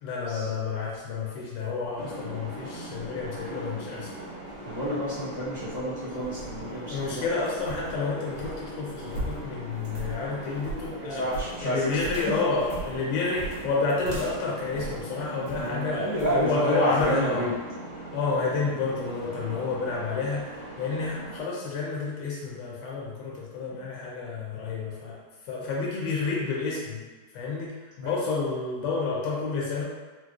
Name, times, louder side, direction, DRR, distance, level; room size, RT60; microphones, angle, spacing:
voice 1, 0.0-4.1 6.9-11.2 11.6-17.5 18.0-25.2 25.4-27.0 27.3-29.8, left 4 dB, 70° left, -4 dB, 1.1 m, -30 dB
sound 1, 1.9-21.4, right 1 dB, 25° right, 0.7 m, -41 dB
voice 2, 4.6-7.2 10.9-11.9 15.6-17.5 28.0-28.2, right 1 dB, 25° left, -14 dB, 0.4 m, -29 dB
sound 2, 6.0-15.7 16.2-16.5 17.0-17.2, right 2 dB, 70° right, 1.5 m, -39 dB
4.4 x 2.0 x 2.4 m, 1.3 s
omnidirectional pair, 2.3 m